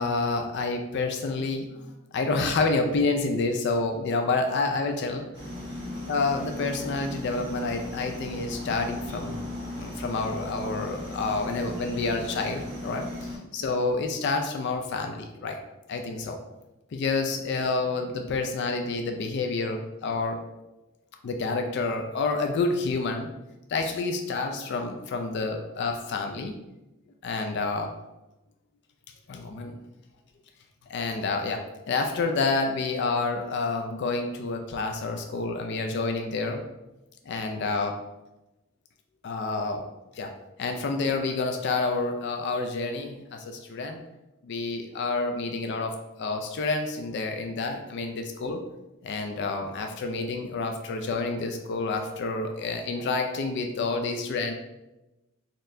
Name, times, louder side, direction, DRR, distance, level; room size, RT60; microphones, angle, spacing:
voice 1, 0.0-1.9 2.1-5.2 6.1-9.4 9.7-15.6 15.9-16.4 16.9-20.4 21.2-23.3 23.7-26.5 27.2-27.9 29.3-29.7 30.9-36.6 37.3-38.0 39.2-39.9 40.2-40.3 40.6-44.0 44.4-48.6 49.0-54.5, left 3 dB, 55° left, 4 dB, 0.3 m, -28 dB
sound 1, 5.3-13.4, left 1 dB, 55° right, 1.4 m, -37 dB
4.1 x 3.1 x 2.6 m, 1.0 s
head